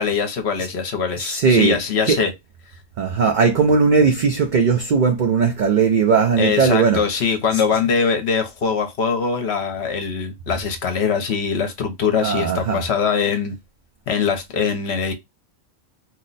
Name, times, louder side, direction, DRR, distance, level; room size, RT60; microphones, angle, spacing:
voice 1, 0.0-2.3 6.4-13.5 14.1-15.1, left 6 dB, 60° left, 0.9 m, -22 dB
voice 2, 1.2-1.8 2.1-2.2 3.0-7.0 12.2-12.8, right 5 dB, 85° right, 0.4 m, -18 dB
2.7 x 2.1 x 3.8 m
omnidirectional pair, 1.4 m